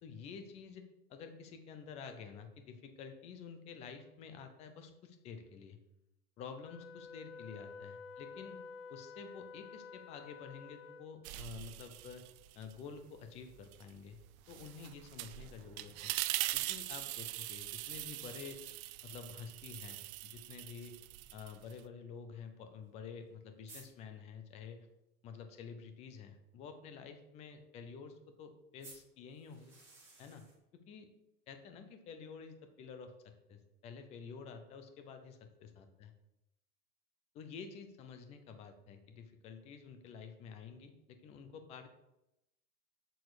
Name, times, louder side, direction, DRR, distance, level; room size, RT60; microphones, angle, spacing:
voice 1, 0.0-0.8 1.1-5.8 6.4-8.6 8.9-12.2 12.6-14.2 14.5-16.1 16.5-18.6 19.0-21.0 21.3-24.9 25.2-29.7 30.2-30.4 30.9-31.1 31.5-36.1 37.3-42.0, left 6 dB, 15° left, 8 dB, 0.4 m, -50 dB
Wind instrument woodwind instrument, 6.6-11.3, left 5 dB, 55° left, 0.9 m, -51 dB
sound 1, 11.2-12.8 13.2-21.9, right 17 dB, 60° right, 0.6 m, -42 dB
sound 2, 13.4-15.5 18.0-19.2 19.5-19.6 20.0-20.1 21.0-21.1 22.9-23.0 23.2-23.3 23.7-23.9 28.8-30.6, right 2 dB, 5° right, 3.5 m, -59 dB
8.1 x 6.9 x 4.7 m, 0.90 s
supercardioid pair, 160°, 46 cm